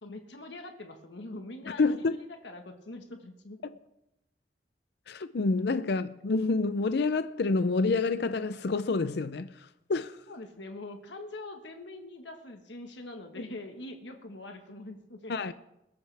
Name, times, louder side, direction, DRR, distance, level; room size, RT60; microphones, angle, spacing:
voice 1, 0.0-3.6 10.3-15.3, left 2 dB, 85° left, 1.4 m, -43 dB
voice 2, 1.8-2.2 5.1-10.2 15.3-15.5, left 3 dB, 65° left, 0.5 m, -28 dB
21.5 x 12.5 x 3.4 m
head